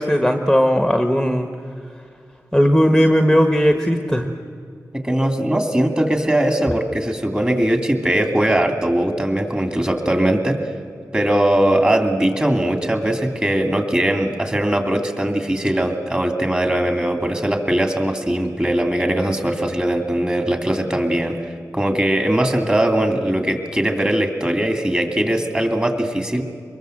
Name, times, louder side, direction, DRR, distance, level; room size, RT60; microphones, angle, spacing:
voice 1, 0.0-1.5 2.5-4.3, equal, ahead, 6 dB, 1.3 m, -17 dB
voice 2, 4.9-10.6 11.1-26.4, right 1 dB, 15° right, 5 dB, 2.6 m, -20 dB
24.0 x 21.5 x 7.9 m, 2.4 s
wide cardioid pair, 75°, 6 cm